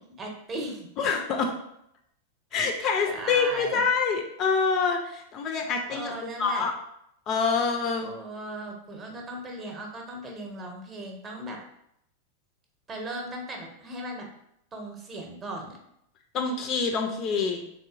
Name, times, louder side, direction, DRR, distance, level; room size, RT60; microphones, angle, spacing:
voice 1, 0.2-0.9 2.6-3.8 5.9-6.7 8.0-11.6 12.9-14.3 14.7-15.8, right 1 dB, 25° right, 1 dB, 0.7 m, -37 dB
voice 2, 1.0-1.5 2.5-6.1 6.4-6.7 7.3-8.1 16.3-17.6, left 5 dB, 35° left, 3 dB, 0.4 m, -26 dB
3.6 x 2.6 x 2.4 m, 0.76 s
figure-of-eight pair, 90°, 0 cm